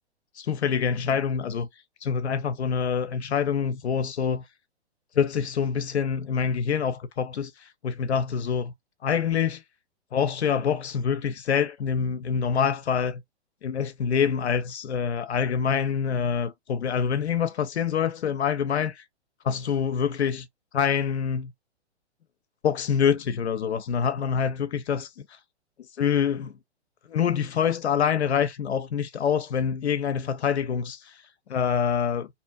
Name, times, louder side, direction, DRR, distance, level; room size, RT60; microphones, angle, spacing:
voice 1, 0.4-1.7 2.0-4.4 5.2-8.7 9.0-9.6 10.1-13.2 13.6-19.0 19.4-20.5 20.7-21.5 22.6-25.4 26.0-26.6 27.1-31.2 31.5-32.3, left 7 dB, 70° left, 0.5 m, -26 dB
2.7 x 2.5 x 2.3 m
figure-of-eight pair, 115°, 34 cm